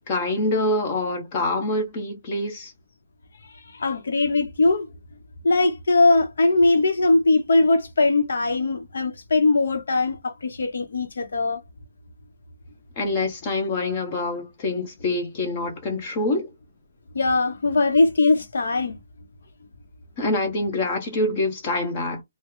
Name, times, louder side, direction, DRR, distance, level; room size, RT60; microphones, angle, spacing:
voice 1, 0.1-2.7 13.0-16.5 20.2-22.2, left 2 dB, 25° left, 0.9 m, -25 dB
voice 2, 3.7-4.9 5.4-11.6 17.1-19.0, left 3 dB, 75° left, 0.7 m, -20 dB
3.1 x 2.1 x 3.6 m
hypercardioid pair, 175°, 0 cm